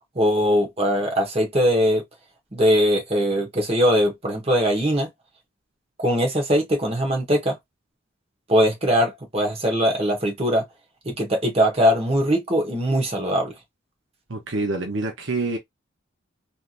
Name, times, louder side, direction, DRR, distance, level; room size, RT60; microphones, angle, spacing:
voice 1, 0.1-2.0 2.5-5.1 6.0-7.6 8.5-10.6 11.0-13.5, equal, 30° right, 1.2 m, -21 dB
voice 2, 14.3-15.6, right 3 dB, 65° right, 0.8 m, -26 dB
3.4 x 2.7 x 2.5 m
head